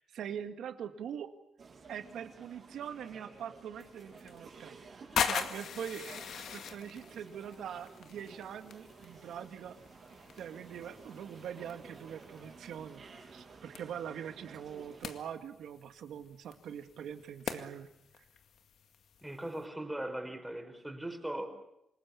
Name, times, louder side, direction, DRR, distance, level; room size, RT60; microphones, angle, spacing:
voice 1, 0.0-1.3 1.9-4.8 5.2-9.8 10.4-13.0 13.3-17.9 18.2-18.3, right 8 dB, 90° right, 8 dB, 2.1 m, -43 dB
sound 1, 1.6-15.1, right 4 dB, 50° right, 6.8 m, -53 dB
sound 2, 3.8-19.6, left 7 dB, 80° left, 2.0 m, -42 dB
voice 2, 19.2-21.6, right 1 dB, 10° right, 5 dB, 5.3 m, -39 dB
27.5 x 20.0 x 8.6 m, 0.81 s
cardioid pair, 95°, 0 cm